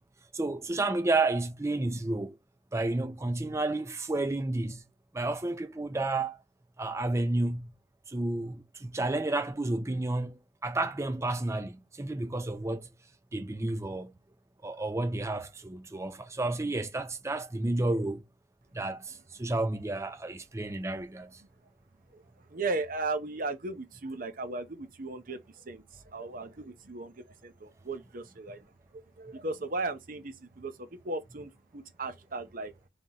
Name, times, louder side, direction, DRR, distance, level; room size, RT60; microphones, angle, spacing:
voice 1, 0.3-2.4 2.7-4.8 5.1-6.4 6.8-7.7 8.1-12.9 13.3-14.2 14.6-18.2 18.7-21.4, right 2 dB, 15° right, 0.5 m, -31 dB
voice 2, 22.5-25.4 25.7-25.8 26.1-28.6 29.2-32.7, right 3 dB, 50° right, 0.8 m, -36 dB
3.9 x 3.5 x 2.8 m
head